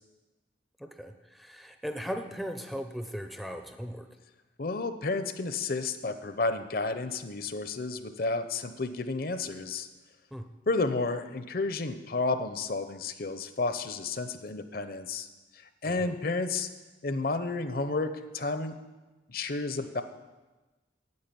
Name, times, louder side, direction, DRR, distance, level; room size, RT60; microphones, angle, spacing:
voice 1, 0.8-4.1 10.3-10.4 15.8-16.1, equal, ahead, 6 dB, 0.5 m, -38 dB
voice 2, 4.6-9.9 10.7-15.3 15.8-16.7 17.0-18.7 19.3-20.0, left 3 dB, 50° left, 10 dB, 0.7 m, -31 dB
9.6 x 7.4 x 9.1 m, 1.2 s
head